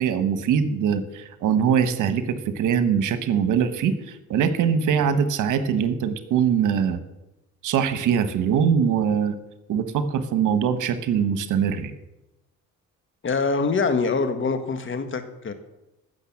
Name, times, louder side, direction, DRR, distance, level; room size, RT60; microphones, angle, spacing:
voice 1, 0.0-7.0 7.6-9.3 9.7-11.9, right 7 dB, 85° right, 11 dB, 1.3 m, -22 dB
voice 2, 13.2-15.5, left 4 dB, 40° left, 9 dB, 1.7 m, -24 dB
15.0 x 6.5 x 7.3 m, 0.95 s
cardioid pair, 90°, 30 cm